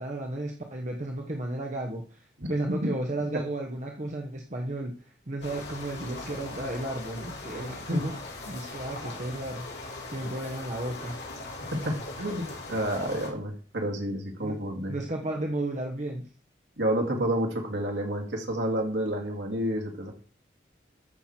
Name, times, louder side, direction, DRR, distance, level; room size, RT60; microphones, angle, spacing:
voice 1, 0.0-8.2 8.5-9.7 10.1-11.3 14.4-14.6 14.9-16.3, right 1 dB, 40° right, 1 dB, 1.1 m, -33 dB
sound 1, 5.4-13.3, left 2 dB, 65° left, 3.8 m, -40 dB
voice 2, 11.7-15.0 16.8-20.1, right 1 dB, 80° right, 1 dB, 2.5 m, -29 dB
13.5 x 6.2 x 4.4 m, 0.42 s
head